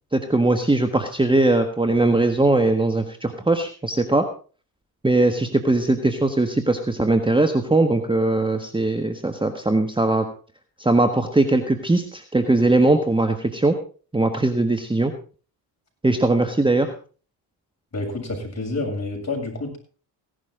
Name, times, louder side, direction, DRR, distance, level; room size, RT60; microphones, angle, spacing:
voice 1, 0.1-4.3 5.0-10.3 10.8-13.8 14.1-15.1 16.0-16.9, right 2 dB, 10° right, 7 dB, 1.5 m, -20 dB
voice 2, 17.9-19.8, left 2 dB, 35° left, 2 dB, 7.5 m, -28 dB
17.0 x 11.5 x 3.8 m, 0.39 s
hypercardioid pair, 60°, 47 cm